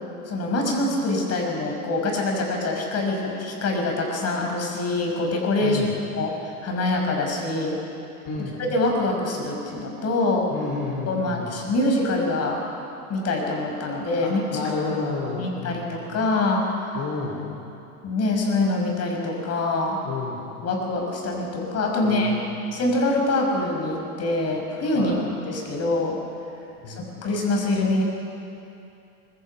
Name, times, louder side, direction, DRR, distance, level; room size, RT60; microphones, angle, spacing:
voice 1, 0.3-5.8 6.1-7.8 8.7-10.5 11.1-12.6 13.1-14.6 15.4-16.6 18.0-20.0 20.6-22.4 22.7-25.1 25.4-26.2 26.9-28.0, left 2 dB, 35° left, 1 dB, 6.0 m, -24 dB
voice 2, 5.6-6.0 8.2-8.6 10.5-11.5 14.2-15.9 16.9-17.4 20.0-20.4 22.0-22.7 24.9-25.2 26.8-27.1, left 4 dB, 50° left, -3 dB, 4.5 m, -31 dB
23.5 x 23.0 x 5.8 m, 2.7 s
hypercardioid pair, 110°, 44 cm